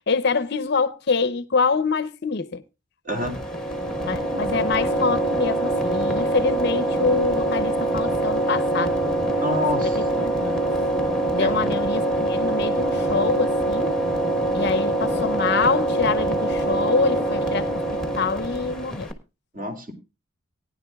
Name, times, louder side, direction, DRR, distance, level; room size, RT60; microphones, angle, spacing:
voice 1, 0.0-2.6 4.0-9.0 10.0-10.6 11.3-14.0 14.5-19.1, left 4 dB, 50° left, 0.6 m, -25 dB
voice 2, 3.0-3.4 9.4-10.0 11.4-11.6 19.5-19.9, left 1 dB, 40° right, 2.7 m, -28 dB
sound 1, 3.1-19.1, right 1 dB, 5° left, 1.2 m, -24 dB
19.0 x 10.0 x 2.3 m
head